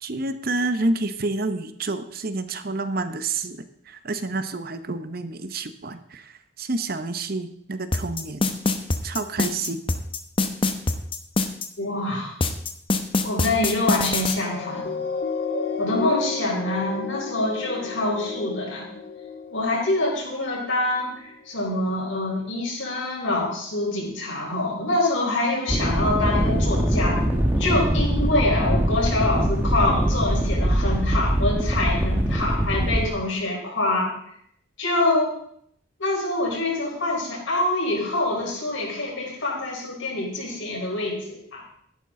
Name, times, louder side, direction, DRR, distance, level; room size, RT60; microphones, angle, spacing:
voice 1, 0.0-6.2 6.6-8.5 9.0-9.8, right 2 dB, 45° right, 10 dB, 0.8 m, -29 dB
sound 1, 7.9-11.7 12.4-14.4, left 3 dB, 25° left, 0.8 m, -23 dB
voice 2, 11.8-12.3 13.2-15.0 15.8-18.9 19.5-27.2 27.6-34.1 34.8-35.3 36.0-41.6, left 2 dB, 70° left, -2 dB, 4.4 m, -25 dB
sound 2, 13.9-20.6 21.2-21.3, left 5 dB, 50° left, 1.5 m, -33 dB
sound 3, 25.7-33.1, right 1 dB, 10° right, 1.3 m, -22 dB
13.0 x 11.0 x 3.8 m, 0.69 s
head